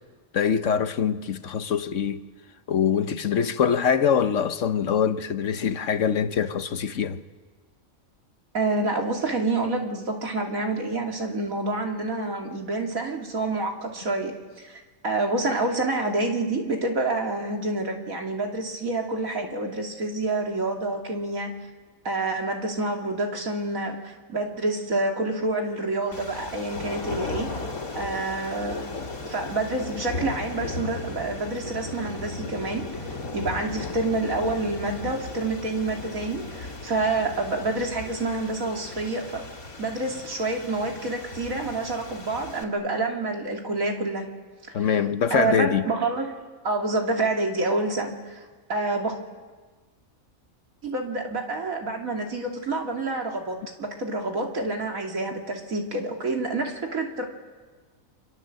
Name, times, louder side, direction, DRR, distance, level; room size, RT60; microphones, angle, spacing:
voice 1, 0.3-2.2 2.7-7.2 44.7-45.9, left 7 dB, 65° left, 1.3 m, -24 dB
voice 2, 8.5-21.5 22.0-27.5 27.9-28.8 29.2-32.9 33.3-39.5 39.8-44.3 44.8-45.0 45.3-46.4 46.6-49.2 50.8-57.2, right 2 dB, 75° right, 3.2 m, -28 dB
sound 1, 26.1-42.6, left 3 dB, 90° left, 3.0 m, -36 dB
29.0 x 25.5 x 7.8 m
omnidirectional pair, 1.4 m